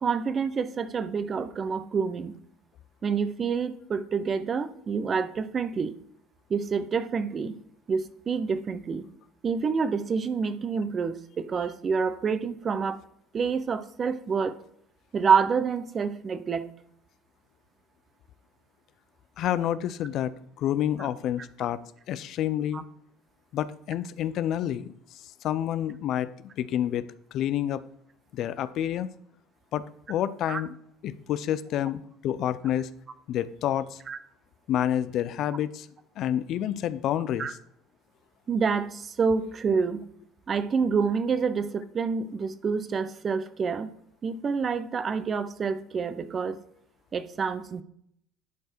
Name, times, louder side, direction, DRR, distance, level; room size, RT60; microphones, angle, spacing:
voice 1, 0.0-2.4 3.0-5.9 6.5-7.6 7.9-9.1 9.4-13.0 13.3-14.6 15.1-16.7 22.7-22.8 30.5-30.6 34.1-34.2 37.4-37.5 38.5-40.0 40.5-43.9 44.2-46.6 47.1-47.8, right 5 dB, 40° right, 13 dB, 0.8 m, -27 dB
voice 2, 19.4-21.8 22.1-22.8 23.5-24.9 25.4-26.3 26.6-27.0 27.3-27.8 28.3-29.1 29.7-30.7 31.0-32.9 33.3-34.0 34.7-35.9 36.2-37.5, left 11 dB, 60° left, 15 dB, 0.5 m, -28 dB
11.0 x 4.6 x 4.5 m, 0.70 s
supercardioid pair, 80°, 0 cm